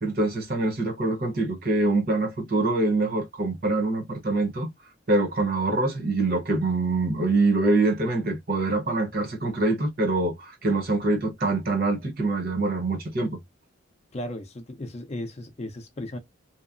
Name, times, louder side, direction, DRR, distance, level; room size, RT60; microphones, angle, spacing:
voice 1, 0.0-4.7 5.1-13.4, right 2 dB, 50° right, 0.9 m, -24 dB
voice 2, 14.1-16.2, left 1 dB, 35° left, 0.5 m, -35 dB
2.8 x 2.0 x 2.4 m
head